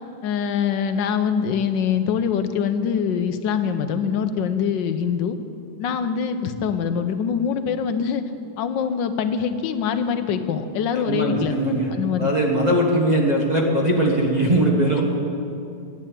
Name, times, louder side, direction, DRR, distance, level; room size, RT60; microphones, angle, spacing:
voice 1, 0.2-5.4 5.8-8.2 8.6-11.6 11.9-12.3, left 7 dB, 85° left, 10 dB, 1.4 m, -24 dB
voice 2, 10.9-11.9 12.2-15.0, right 1 dB, 25° right, -2 dB, 1.5 m, -20 dB
10.5 x 8.8 x 9.0 m, 2.6 s
omnidirectional pair, 2.0 m